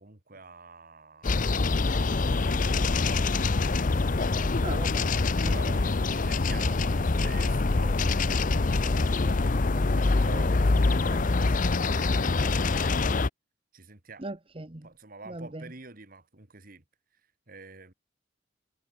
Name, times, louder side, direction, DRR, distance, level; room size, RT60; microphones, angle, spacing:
voice 1, 0.0-1.8 2.4-4.7 5.4-13.2 13.7-14.2 14.8-16.8 17.5-17.9, right 3 dB, 50° right, 2.6 m, -48 dB
sound 1, 1.2-13.3, left 3 dB, 45° left, 0.7 m, -25 dB
voice 2, 4.6-5.1 5.4-5.7 14.2-14.9 15.3-15.6, right 2 dB, 30° right, 1.2 m, -38 dB
head